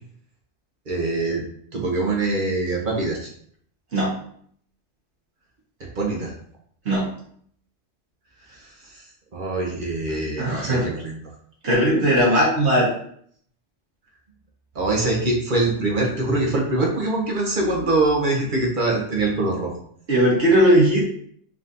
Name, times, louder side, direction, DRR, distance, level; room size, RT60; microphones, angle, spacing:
voice 1, 0.9-1.4 1.7-3.3 5.8-6.3 8.5-11.2 14.7-19.7, right 2 dB, 45° right, -1 dB, 1.0 m, -24 dB
voice 2, 10.4-10.9 11.6-12.9 20.1-21.1, equal, 65° right, -4 dB, 1.6 m, -18 dB
4.1 x 3.7 x 2.6 m, 0.62 s
omnidirectional pair, 1.3 m